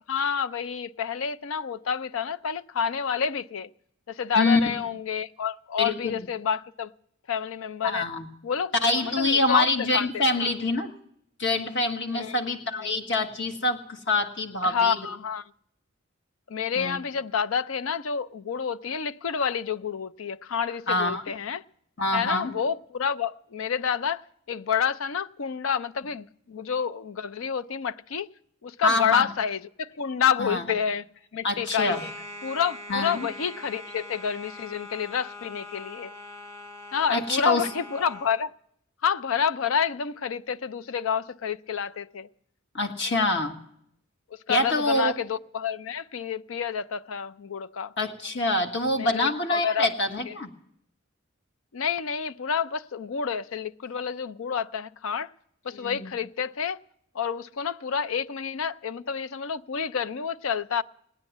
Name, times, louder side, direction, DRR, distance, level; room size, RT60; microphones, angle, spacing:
voice 1, 0.1-3.7 4.1-6.9 7.3-8.0 8.4-8.7 9.1-10.2 12.1-12.4 12.8-12.9 14.6-15.4 16.5-21.6 22.1-24.2 24.5-28.3 28.6-31.0 31.3-32.0 32.4-36.1 36.9-38.5 39.0-42.3 44.5-47.9 49.0-49.9 51.7-55.3 55.6-56.8 57.1-60.8, left 7 dB, 90° left, 0.5 m, -29 dB
voice 2, 4.3-4.7 5.8-6.2 7.8-8.3 8.8-10.9 11.4-15.0 16.8-17.0 20.9-21.2 22.0-22.5 28.8-29.3 30.4-30.7 31.4-32.1 32.9-33.3 37.1-37.7 42.7-43.6 44.5-45.1 48.0-50.5 55.7-56.1, left 2 dB, 65° left, 1.7 m, -26 dB
sound 1, 31.9-38.4, left 2 dB, 20° left, 1.8 m, -42 dB
18.0 x 9.7 x 7.3 m
head